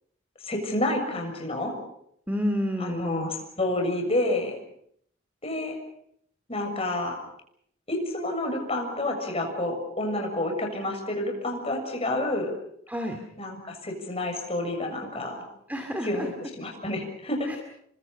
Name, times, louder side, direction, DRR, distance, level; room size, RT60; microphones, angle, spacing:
voice 1, 0.4-1.8 2.8-3.3 3.6-4.6 5.4-5.8 6.5-7.2 7.9-12.5 13.4-15.4 16.0-17.5, left 1 dB, 30° left, 3 dB, 6.9 m, -29 dB
voice 2, 2.3-3.3 12.9-13.2 15.7-16.3 17.4-17.6, equal, 10° right, 5 dB, 2.4 m, -29 dB
30.0 x 24.5 x 5.7 m, 0.69 s
head